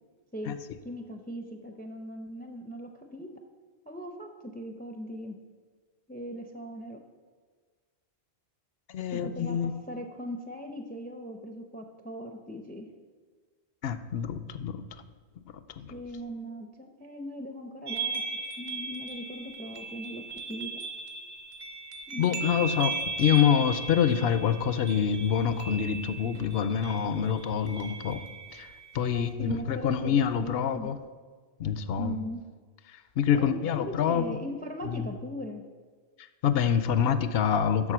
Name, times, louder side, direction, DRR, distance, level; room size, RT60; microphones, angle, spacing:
voice 1, 0.8-3.3 3.9-5.4 6.1-7.0 9.1-12.9 15.9-20.7 22.1-22.4 29.1-31.0 32.0-32.4 33.4-35.6, equal, 10° left, 5 dB, 0.5 m, -39 dB
voice 2, 8.9-9.7 13.8-14.8 15.8-15.9 22.2-28.2 28.5-28.7 28.9-31.0 31.6-32.2 33.2-34.4 34.8-35.1 36.4-37.9, left 8 dB, 70° left, 12 dB, 0.8 m, -26 dB
sound 1, 17.9-29.3, right 4 dB, 45° right, 0.9 m, -37 dB
7.4 x 6.4 x 6.0 m, 1.5 s
omnidirectional pair, 1.1 m